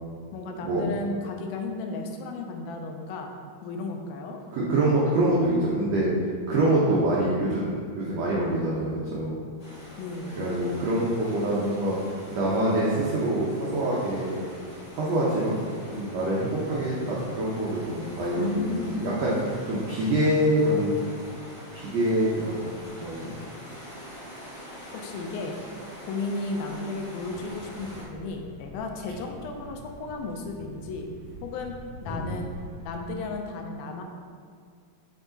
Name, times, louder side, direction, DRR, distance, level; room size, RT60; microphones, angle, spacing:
voice 1, 0.3-3.3 3.6-4.4 10.0-10.4 18.4-19.2 24.9-25.6 26.1-31.1 31.4-32.5 32.8-34.0, left 3 dB, 80° left, 3 dB, 2.4 m, -34 dB
voice 2, 4.5-6.1 6.5-9.3 10.4-12.0 12.3-14.4 14.9-15.6 15.9-18.6 18.9-19.3 19.6-21.0 21.7-22.6 23.0-23.3, right 1 dB, 80° right, -6 dB, 1.5 m, -25 dB
sound 1, 9.6-28.0, equal, 30° left, 1.0 m, -45 dB
Thump thud, 27.2-33.4, equal, 60° left, 2.6 m, -42 dB
7.4 x 4.8 x 3.9 m, 2.1 s
omnidirectional pair, 4.3 m